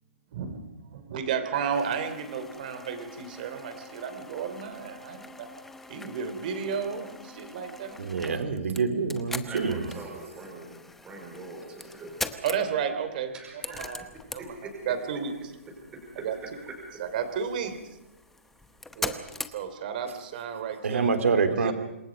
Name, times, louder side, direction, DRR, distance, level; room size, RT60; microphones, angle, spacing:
voice 1, 0.3-0.6 0.9-5.5 5.9-8.4 12.4-13.3 13.7-14.0 14.3-14.6 14.9-15.3 16.2-16.3 17.0-17.8 18.9-19.2 19.5-21.1 21.6-21.7, right 7 dB, 40° right, 9 dB, 3.2 m, -32 dB
sound 1, 1.7-20.1, left 3 dB, 5° left, 0.8 m, -42 dB
voice 2, 8.0-9.8 20.8-21.7, right 5 dB, 75° right, 7 dB, 3.2 m, -26 dB
voice 3, 9.5-12.4 13.3-14.1 14.4-15.2 15.9-16.3, right 3 dB, 10° right, 1 dB, 5.0 m, -43 dB
27.0 x 20.5 x 5.3 m, 0.97 s
hypercardioid pair, 165°, 7 cm